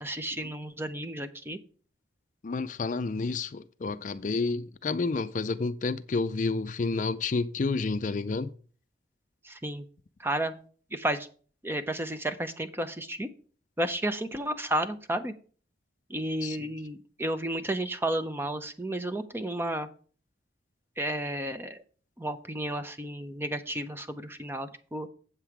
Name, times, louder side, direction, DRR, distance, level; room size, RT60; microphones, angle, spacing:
voice 1, 0.0-1.6 9.4-9.9 10.2-10.5 10.9-11.3 11.6-13.3 13.8-15.3 16.1-19.9 21.0-21.8 22.2-25.1, right 1 dB, 10° right, 0.5 m, -32 dB
voice 2, 2.4-8.5 16.4-16.6, left 3 dB, 40° left, 0.4 m, -30 dB
7.9 x 7.6 x 4.7 m
head